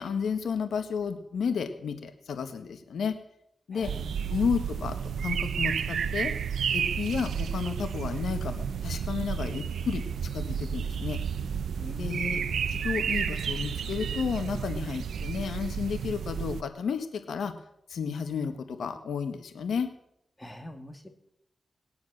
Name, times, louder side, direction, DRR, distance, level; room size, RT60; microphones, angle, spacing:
voice 1, 0.0-3.1 3.7-3.9 4.3-6.3 6.7-10.0 10.3-11.2 12.0-12.4 12.7-17.5 17.9-19.9, left 6 dB, 85° left, 8 dB, 1.5 m, -32 dB
voice 2, 3.7-4.5 11.8-12.6 20.4-21.1, left 1 dB, 15° left, 5 dB, 2.8 m, -44 dB
sound 1, 3.8-16.6, right 7 dB, 90° right, 0.7 m, -31 dB
19.0 x 10.5 x 6.5 m, 0.78 s
cardioid pair, 60°, 0 cm